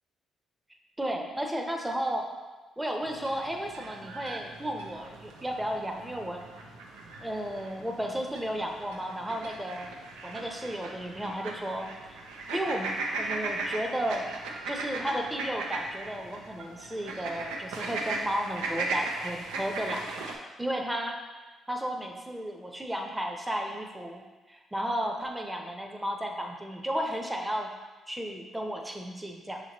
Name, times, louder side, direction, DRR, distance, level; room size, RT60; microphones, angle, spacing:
voice 1, 1.0-2.2 2.8-6.4 7.2-9.9 10.2-12.2 12.5-14.3 14.7-20.1 20.6-21.2 21.7-24.2 24.5-27.7 28.1-29.6, equal, 10° right, 2 dB, 0.7 m, -33 dB
sound 1, 3.0-20.4, right 3 dB, 85° right, 0.5 m, -38 dB
6.0 x 2.9 x 2.9 m, 1.2 s
supercardioid pair, 50°, 0 cm